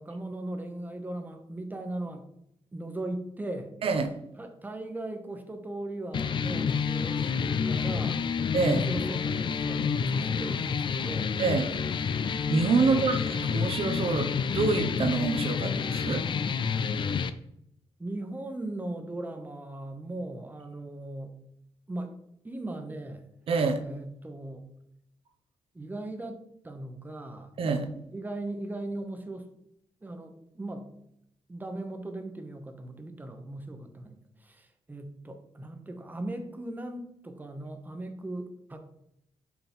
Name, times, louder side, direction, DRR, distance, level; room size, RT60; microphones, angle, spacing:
voice 1, 0.0-2.3 2.7-3.7 4.4-8.2 8.6-11.3 12.8-13.4 18.0-21.3 21.9-22.1 22.4-23.3 23.8-24.6 25.7-27.5 28.1-29.5 30.0-30.9 31.5-38.8, right 1 dB, 15° right, 6 dB, 1.0 m, -38 dB
voice 2, 3.8-4.1 8.5-8.8 11.4-11.7 12.5-16.2 23.5-23.8 27.6-27.9, right 4 dB, 60° right, 6 dB, 1.0 m, -26 dB
sound 1, 6.1-17.3, left 6 dB, 50° left, 0.5 m, -29 dB
5.8 x 5.5 x 4.4 m, 0.75 s
cardioid pair, 115°, 11 cm